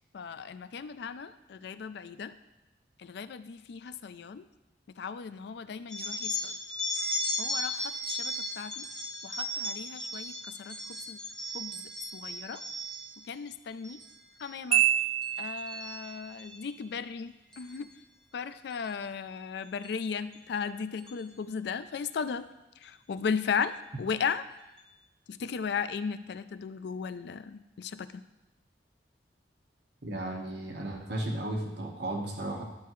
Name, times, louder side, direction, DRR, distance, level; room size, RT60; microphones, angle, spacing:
voice 1, 0.1-2.3 3.0-4.4 5.0-6.5 7.4-8.9 9.2-11.2 11.5-12.6 13.3-14.0 14.4-14.8 15.4-17.9 18.3-22.5 22.8-23.7 24.0-24.4 25.3-28.2, left 6 dB, 65° left, 12 dB, 0.4 m, -36 dB
sound 1, 5.9-13.2 13.7-14.1 14.4-14.8 15.2-16.6 17.5-17.8 18.7-18.9 19.8-19.9 20.3-20.4 21.0-21.2, left 1 dB, 5° left, 1.2 m, -36 dB
Marimba xylophone, 14.7-16.1, right 11 dB, 35° right, 0.4 m, -27 dB
voice 2, 30.0-32.6, right 1 dB, 70° right, 1 dB, 1.2 m, -34 dB
11.0 x 5.7 x 3.1 m, 1.0 s
head